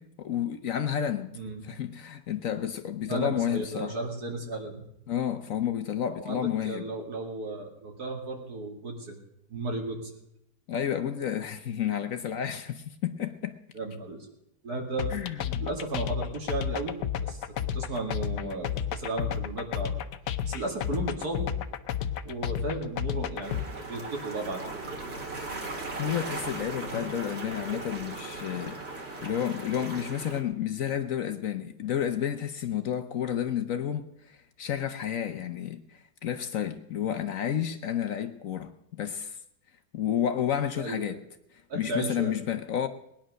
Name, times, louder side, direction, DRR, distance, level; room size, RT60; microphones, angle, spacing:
voice 1, 0.0-1.4 1.7-3.9 5.1-6.8 10.7-13.6 15.1-15.6 26.0-39.4 39.9-41.2 41.7-42.9, left 9 dB, 60° left, 1.1 m, -31 dB
voice 2, 1.3-1.7 3.1-4.8 6.1-9.2 9.5-10.1 13.7-14.3 14.6-15.1 15.6-17.4 17.7-19.9 20.5-21.5 22.2-24.7 26.9-27.1 40.8-41.2 41.7-42.4, right 2 dB, 65° right, 2.8 m, -34 dB
sound 1, 15.0-23.6, left 9 dB, 85° left, 1.4 m, -31 dB
sound 2, 23.4-30.4, right 3 dB, 40° right, 2.3 m, -38 dB
19.5 x 10.0 x 6.3 m
omnidirectional pair, 1.8 m